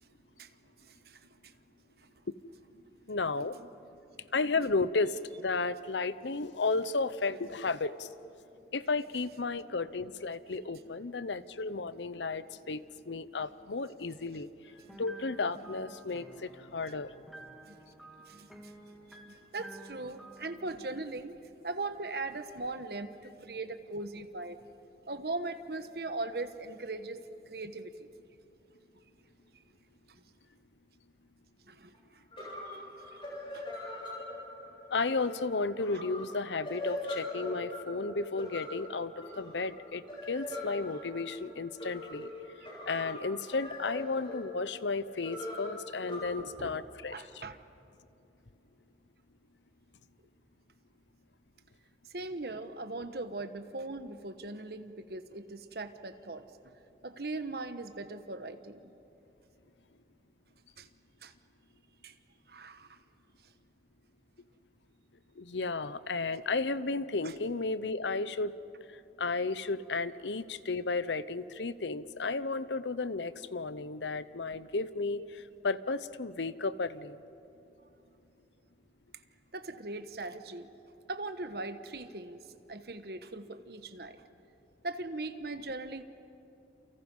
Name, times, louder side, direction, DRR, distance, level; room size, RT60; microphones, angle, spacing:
voice 1, 0.8-1.5 3.6-3.7 14.9-15.0 17.6-17.8 18.3-21.3 21.6-24.6 25.1-28.1 31.7-32.2 32.7-32.8 33.1-33.2 33.5-33.7 46.4-46.8 47.1-47.6 52.1-56.4 57.0-58.9 60.8-60.9 61.2-61.3 62.0-62.1 62.5-63.0 67.2-67.3 79.5-80.7 81.1-82.4 82.7-84.2 84.8-86.0, right 2 dB, 60° right, 9 dB, 1.3 m, -40 dB
voice 2, 3.1-3.5 4.3-8.1 8.7-12.8 13.1-14.5 15.0-17.1 34.9-42.3 42.9-47.4 65.4-68.5 69.2-77.2, left 3 dB, 90° left, 15 dB, 0.8 m, -33 dB
sound 1, 14.6-20.9, right 1 dB, ahead, 2.0 m, -52 dB
sound 2, 31.9-32.0 32.3-46.2, left 1 dB, 30° left, 7.3 m, -42 dB
29.0 x 29.0 x 5.5 m, 2.9 s
head